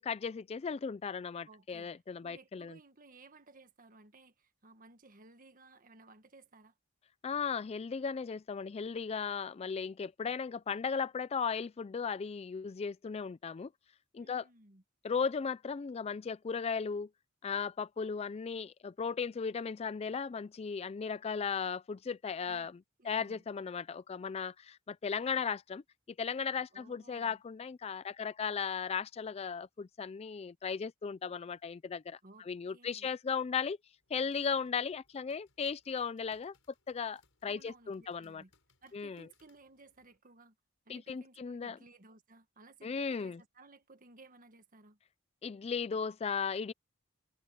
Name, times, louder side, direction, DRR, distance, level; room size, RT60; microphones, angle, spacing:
voice 1, 0.0-2.8 7.2-13.7 14.1-14.4 15.0-17.1 17.4-22.7 23.1-25.8 26.2-32.2 32.5-33.8 34.1-36.5 36.9-38.4 38.9-39.3 40.9-41.8 42.8-43.4 45.4-46.7, left 6 dB, 30° left, 0.3 m, -36 dB
voice 2, 1.4-6.7 14.2-14.8 22.4-22.7 23.0-23.4 26.7-27.4 32.2-32.4 32.7-33.1 37.4-38.5 38.8-40.6 40.8-45.0, right 3 dB, 40° right, 1.7 m, -58 dB
sound 1, 33.9-40.2, left 4 dB, 70° left, 7.1 m, -74 dB
head